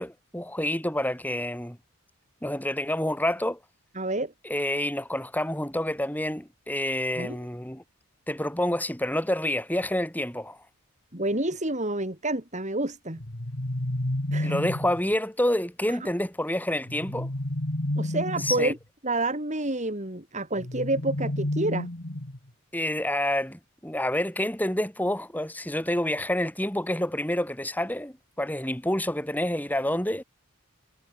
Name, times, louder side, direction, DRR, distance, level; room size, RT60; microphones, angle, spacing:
voice 1, 0.0-1.8 2.4-3.6 4.4-7.8 8.3-10.6 14.4-17.3 18.4-18.7 22.7-30.2, left 1 dB, 10° left, 5.0 m, -28 dB
voice 2, 4.0-4.3 7.2-7.4 11.1-13.2 14.3-14.6 15.9-16.0 18.0-18.8 19.0-21.9, right 2 dB, 35° right, 4.2 m, -28 dB
sound 1, 13.2-15.0 16.8-18.7 20.6-22.5, left 1 dB, 55° left, 2.2 m, -30 dB
head